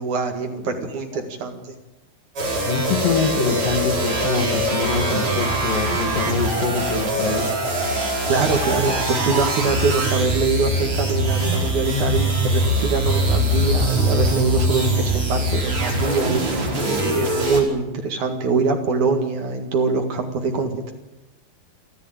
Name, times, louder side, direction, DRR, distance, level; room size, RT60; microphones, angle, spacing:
voice 1, 0.0-1.8 8.3-20.9, right 4 dB, 55° right, 5 dB, 3.0 m, -24 dB
sound 1, 2.4-17.6, right 1 dB, 35° right, 5.5 m, -22 dB
voice 2, 2.6-7.5, left 5 dB, 60° left, 6 dB, 3.5 m, -24 dB
28.0 x 13.5 x 9.0 m, 1.0 s
omnidirectional pair, 4.6 m